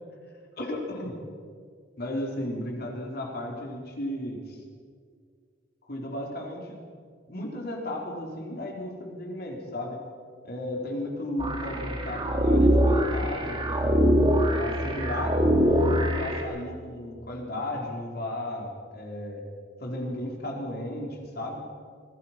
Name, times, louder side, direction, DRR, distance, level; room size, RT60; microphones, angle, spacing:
voice 1, 0.6-1.2 2.0-4.6 5.8-6.8 7.3-10.0 10.4-14.0 14.4-19.4 19.8-21.6, left 1 dB, 55° left, 0 dB, 4.2 m, -34 dB
sound 1, 11.4-16.4, equal, 25° right, 3.0 m, -23 dB
25.5 x 17.5 x 6.0 m, 2.1 s
head